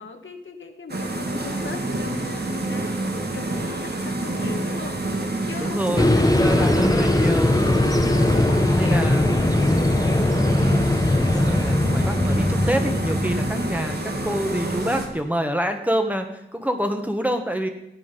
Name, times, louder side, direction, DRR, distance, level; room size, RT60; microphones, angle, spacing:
voice 1, 0.0-6.3 6.6-6.7 7.0-7.1 8.1-9.0 9.4-10.5, left 4 dB, 75° left, 5 dB, 1.5 m, -39 dB
sound 1, 0.9-15.1, right 2 dB, 55° right, 1.9 m, -28 dB
sound 2, 1.4-15.1, right 1 dB, 40° right, 2.7 m, -45 dB
voice 2, 5.6-7.6 8.7-9.3 11.3-16.3 16.5-17.7, equal, 5° right, 5 dB, 1.4 m, -27 dB
sound 3, 6.0-14.3, left 1 dB, 20° left, 0.9 m, -20 dB
16.0 x 9.4 x 5.3 m, 0.83 s
wide cardioid pair, 85°, 20 cm